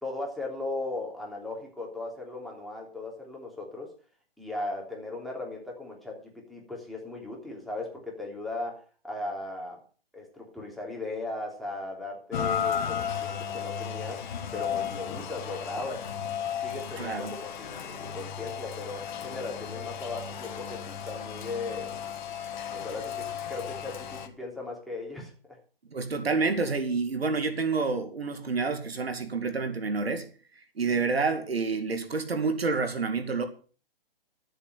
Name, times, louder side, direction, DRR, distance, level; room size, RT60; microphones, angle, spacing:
voice 1, 0.0-3.9 4.4-9.8 10.1-14.2 14.5-16.1 16.6-21.9 22.7-25.6, left 2 dB, ahead, 3.2 m, -37 dB
Rain, 12.3-24.3, left 8 dB, 50° left, 1.8 m, -34 dB
voice 2, 17.0-17.3 25.9-30.3 30.8-33.4, right 4 dB, 90° right, 2.3 m, -28 dB
13.0 x 7.5 x 6.7 m
hypercardioid pair, 140°, 30 cm